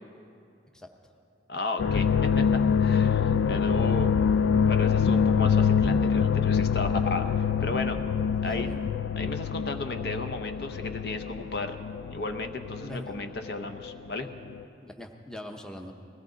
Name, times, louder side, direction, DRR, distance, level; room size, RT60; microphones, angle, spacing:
voice 1, 1.5-2.4 2.8-4.1 4.6-8.0 8.4-8.7 9.2-11.8 12.1-14.3, left 2 dB, 60° left, 7 dB, 0.8 m, -34 dB
sound 1, 1.8-13.9 14.2-14.6, left 6 dB, 85° left, 0.3 m, -25 dB
voice 2, 8.3-8.8 12.8-13.1 14.8-15.9, left 1 dB, 5° left, 3 dB, 0.7 m, -41 dB
21.0 x 16.5 x 3.9 m, 2.5 s
head